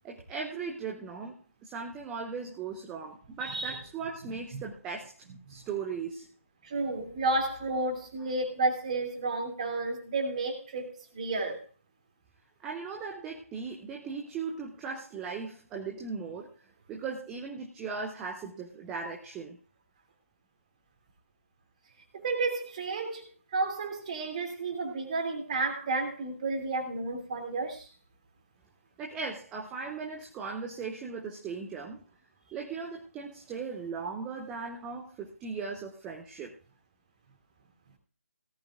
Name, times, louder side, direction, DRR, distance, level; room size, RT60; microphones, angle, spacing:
voice 1, 0.0-1.4 1.6-5.1 5.5-6.3 12.6-16.5 16.9-19.6 29.0-32.0 32.5-36.5, right 5 dB, 10° right, 0.6 m, -38 dB
voice 2, 3.4-3.8 4.5-4.6 5.5-5.6 6.6-11.6 22.1-23.3 23.5-27.9, right 3 dB, 30° right, 2.7 m, -31 dB
17.5 x 11.5 x 2.5 m
figure-of-eight pair, 150°, 8 cm